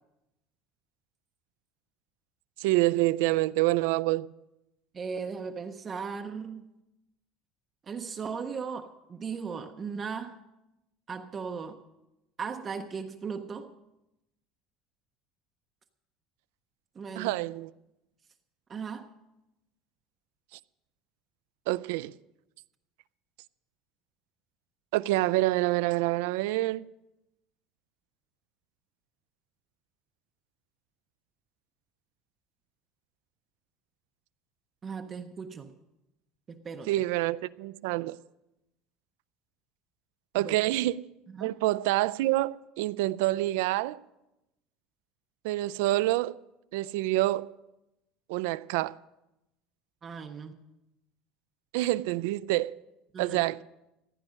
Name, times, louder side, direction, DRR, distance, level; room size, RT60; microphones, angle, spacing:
voice 1, 2.6-4.3 17.2-17.7 20.5-20.6 21.7-22.1 24.9-26.9 36.9-38.2 40.3-41.0 41.4-44.0 45.4-46.4 46.7-47.5 48.3-49.0 51.7-52.7 53.2-53.6, right 18 dB, 80° right, 0.4 m, -27 dB
voice 2, 4.9-6.7 7.8-10.4 11.1-11.8 12.4-13.7 16.9-17.4 18.7-19.1 34.8-35.7 36.5-36.9 40.4-40.6 41.3-41.5 50.0-50.6 53.1-53.4, right 5 dB, 20° right, 0.6 m, -37 dB
15.5 x 10.0 x 6.4 m
cardioid pair, 180°, 0 cm